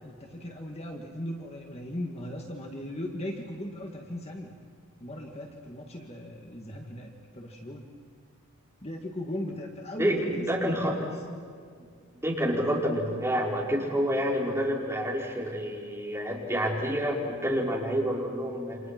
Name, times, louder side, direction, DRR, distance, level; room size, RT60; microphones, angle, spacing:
voice 1, 0.0-4.5 5.0-7.9 8.8-11.0, left 1 dB, 30° left, 1 dB, 2.0 m, -38 dB
voice 2, 10.0-11.1 12.2-18.8, equal, 10° right, -4 dB, 5.3 m, -28 dB
30.0 x 27.5 x 6.1 m, 2.2 s
head